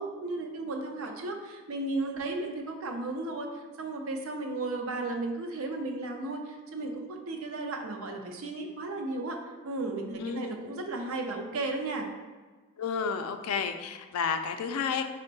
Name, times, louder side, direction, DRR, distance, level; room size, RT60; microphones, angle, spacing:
voice 1, 0.0-3.5 3.8-6.4 6.7-9.4 9.6-12.1, right 2 dB, 75° right, 3 dB, 0.5 m, -34 dB
voice 2, 12.8-15.0, left 6 dB, 85° left, 8 dB, 0.3 m, -31 dB
4.3 x 2.1 x 3.9 m, 1.3 s
head